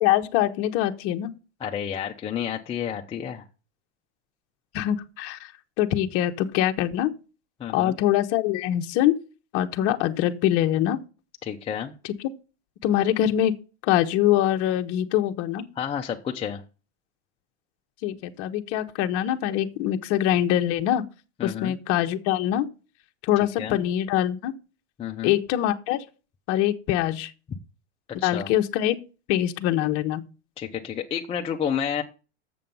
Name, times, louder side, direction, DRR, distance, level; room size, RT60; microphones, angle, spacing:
voice 1, 0.0-1.3 4.7-7.1 7.7-9.1 9.5-11.0 12.0-12.1 12.8-13.5 13.8-15.6 18.0-21.0 21.4-22.7 23.2-24.5 25.2-26.0 26.5-27.3 28.2-29.0 29.3-30.2, left 12 dB, 45° left, 0.9 m, -24 dB
voice 2, 1.6-3.4 7.6-8.0 11.4-11.9 15.8-16.6 21.4-21.7 23.6-23.8 25.0-25.4 28.1-28.5 30.6-32.0, left 8 dB, 15° left, 0.6 m, -30 dB
7.3 x 6.9 x 5.4 m
supercardioid pair, 135°, 35 cm